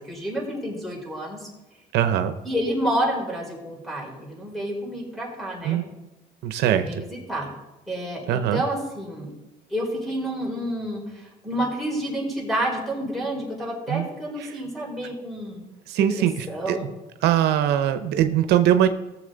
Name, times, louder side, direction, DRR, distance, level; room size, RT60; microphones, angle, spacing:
voice 1, 0.1-1.5 2.4-5.8 6.7-7.5 7.9-9.3 9.7-15.6 16.1-16.9, right 1 dB, ahead, -2 dB, 4.5 m, -29 dB
voice 2, 1.9-2.3 5.6-5.8 6.4-6.9 8.3-8.6 13.9-14.1 14.4-14.5 15.9-16.8 17.2-18.9, right 10 dB, 80° right, 9 dB, 0.7 m, -21 dB
17.5 x 7.2 x 3.9 m, 1.0 s
cardioid pair, 110°, 17 cm